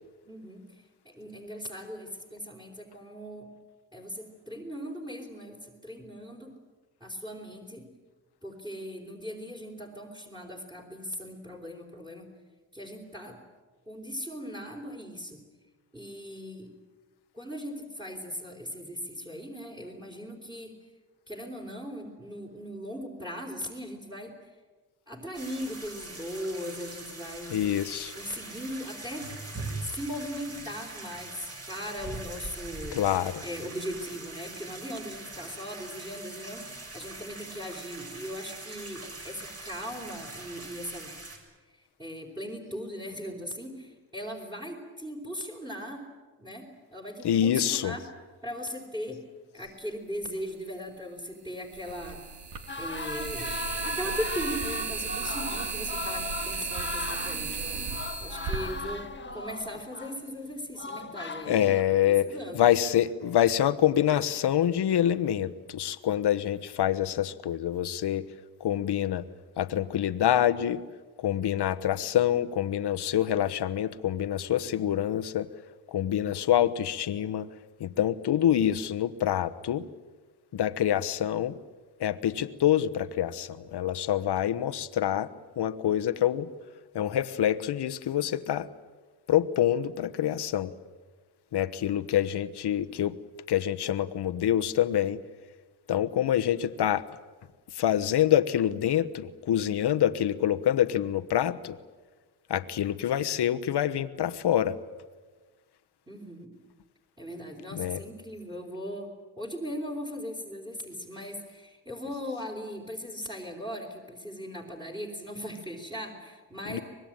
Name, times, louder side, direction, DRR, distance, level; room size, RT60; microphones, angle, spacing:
voice 1, 0.2-3.5 3.9-6.6 7.0-7.9 8.4-12.3 12.7-13.4 13.9-15.4 15.9-16.7 17.3-20.8 21.3-24.5 25.1-27.6 28.1-29.4 29.8-33.0 33.4-41.2 41.7-46.0 46.4-48.0 48.4-49.2 49.5-52.2 52.8-53.5 53.8-57.8 58.2-61.7 62.0-62.6 106.1-106.5 107.2-109.1 109.4-116.8, equal, 10° right, 2 dB, 4.1 m, -39 dB
sound 1, 25.3-41.4, right 2 dB, 35° right, 7.0 m, -42 dB
voice 2, 27.5-28.1 32.9-33.4 47.2-47.9 61.5-68.3 68.6-69.3 69.6-70.8 71.2-75.5 75.9-77.5 77.8-79.9 80.5-81.6 82.0-85.3 85.6-86.5 86.9-88.7 89.3-90.7 91.5-93.2 93.5-95.2 95.9-97.0 97.7-101.8 102.5-104.8 107.7-108.0 116.7-116.8, left 11 dB, 65° left, 11 dB, 1.2 m, -26 dB
sound 2, 50.2-50.3 51.7-59.6, right 5 dB, 65° right, 3.2 m, -35 dB
sound 3, 52.7-60.2 60.8-61.8, left 3 dB, 25° left, 1.6 m, -37 dB
25.0 x 20.5 x 9.0 m, 1.4 s
cardioid pair, 80°, 43 cm